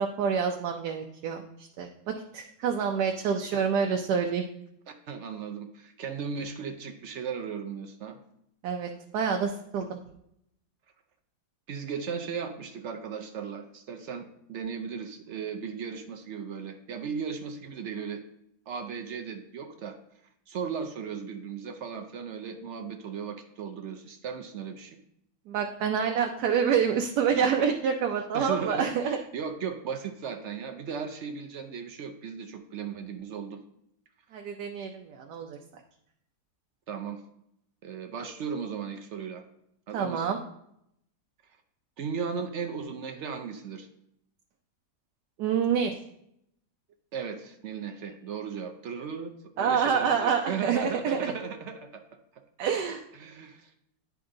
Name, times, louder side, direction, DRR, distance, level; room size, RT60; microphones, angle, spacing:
voice 1, 0.0-4.4 8.6-10.0 25.5-29.2 34.3-35.6 39.9-40.4 45.4-45.9 49.6-51.3 52.6-53.0, right 7 dB, 80° right, 3 dB, 1.2 m, -27 dB
voice 2, 5.1-8.2 11.7-18.2 18.7-20.0 20.5-25.0 28.3-33.6 36.9-37.2 37.8-39.4 39.9-40.4 42.0-43.9 47.1-52.0 53.2-53.7, right 6 dB, 65° right, 6 dB, 0.7 m, -36 dB
10.0 x 3.5 x 3.7 m, 0.76 s
omnidirectional pair, 1.7 m